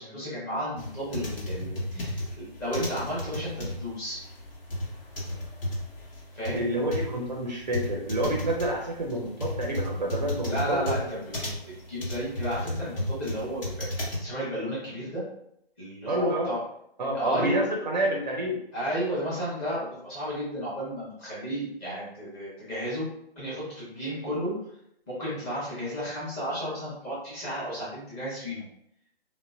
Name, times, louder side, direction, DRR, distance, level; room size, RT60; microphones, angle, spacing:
voice 1, 0.0-2.2 2.6-4.2 6.3-6.6 10.5-11.5 11.9-13.9 14.2-15.2 15.8-16.6 17.1-17.6 18.7-23.1 23.4-24.5 25.1-28.6, equal, 15° left, -9 dB, 1.0 m, -32 dB
sound 1, 0.8-14.2, left 1 dB, 60° left, 1.1 m, -33 dB
voice 2, 1.5-2.1 6.5-10.8 16.1-16.5 17.0-18.6, right 1 dB, 45° right, 0 dB, 0.5 m, -29 dB
3.8 x 2.0 x 2.4 m, 0.74 s
figure-of-eight pair, 140°, 32 cm